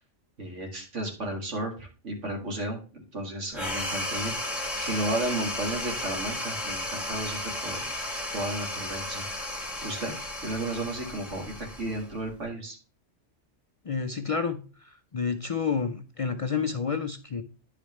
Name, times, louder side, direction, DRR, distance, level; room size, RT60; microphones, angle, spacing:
voice 1, 0.4-4.4 4.8-7.9 8.3-9.2 9.8-10.1 10.4-12.8, right 1 dB, 80° right, 1 dB, 2.3 m, -33 dB
sound 1, 3.5-12.4, left 1 dB, ahead, 1.5 m, -34 dB
voice 2, 13.8-17.4, left 6 dB, 60° left, 7 dB, 0.3 m, -30 dB
10.0 x 5.0 x 3.1 m, 0.37 s
omnidirectional pair, 1.2 m